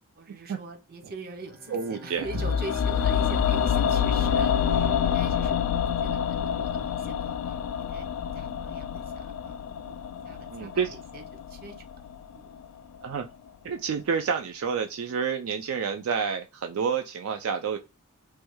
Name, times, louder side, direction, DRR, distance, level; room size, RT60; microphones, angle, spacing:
voice 1, 0.2-5.6 6.0-11.8 12.3-12.5, right 2 dB, 45° right, 5 dB, 0.7 m, -43 dB
Bowed string instrument, 1.4-6.8, left 4 dB, ahead, 0.5 m, -41 dB
voice 2, 1.7-2.2 10.5-10.9 13.0-13.3 13.6-17.8, right 6 dB, 70° right, 5 dB, 0.3 m, -29 dB
sound 1, 2.2-12.4 12.6-12.7, left 8 dB, 85° left, 0.3 m, -27 dB
3.2 x 2.2 x 3.1 m, 0.27 s
head